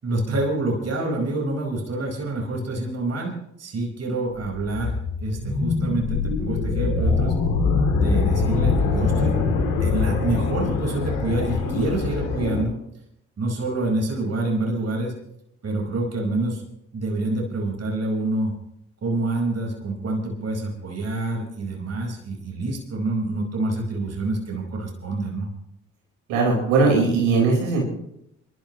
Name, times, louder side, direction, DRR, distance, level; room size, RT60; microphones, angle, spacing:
voice 1, 0.0-7.3 7.9-9.4 9.8-12.7 13.4-15.1 15.6-16.6 16.9-18.5 19.0-25.5, right 2 dB, 50° right, 0 dB, 5.1 m, -27 dB
sound 1, 4.4-12.6, left 4 dB, 80° left, 3.3 m, -23 dB
voice 2, 26.3-27.8, right 4 dB, 75° right, -2 dB, 5.0 m, -19 dB
27.5 x 12.5 x 3.2 m, 0.78 s
hypercardioid pair, 45°, 33 cm